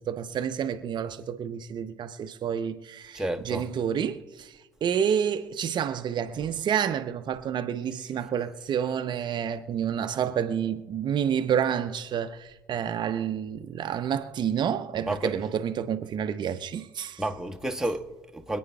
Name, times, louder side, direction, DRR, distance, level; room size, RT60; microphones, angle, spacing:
voice 1, 0.0-17.2, right 8 dB, 50° right, 0.7 m, -29 dB
voice 2, 3.1-3.6 15.1-15.3 17.2-18.6, right 1 dB, 5° right, 1.3 m, -31 dB
26.5 x 9.2 x 2.3 m
hypercardioid pair, 55°, 10 cm